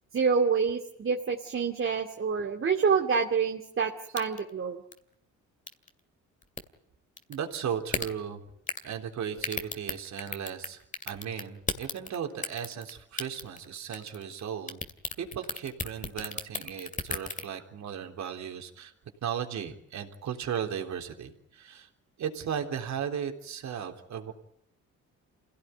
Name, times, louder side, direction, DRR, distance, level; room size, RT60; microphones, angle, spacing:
voice 1, 0.1-4.8, right 5 dB, 45° right, 3 dB, 2.4 m, -27 dB
sound 1, 4.2-4.5 4.9-5.0 5.7-5.9 6.4-6.6 7.2-7.4 7.9-8.1 8.7-8.9 9.4-10.7 10.9-12.1 12.4-12.9 13.2-13.6 13.9-14.4 14.7-17.4, left 3 dB, 25° left, 2.2 m, -33 dB
voice 2, 7.3-8.4 8.8-14.8 15.2-18.9 19.2-21.9 22.2-24.3, right 8 dB, 65° right, 4 dB, 3.7 m, -36 dB
27.0 x 17.0 x 9.4 m, 0.68 s
cardioid pair, 90°, 30 cm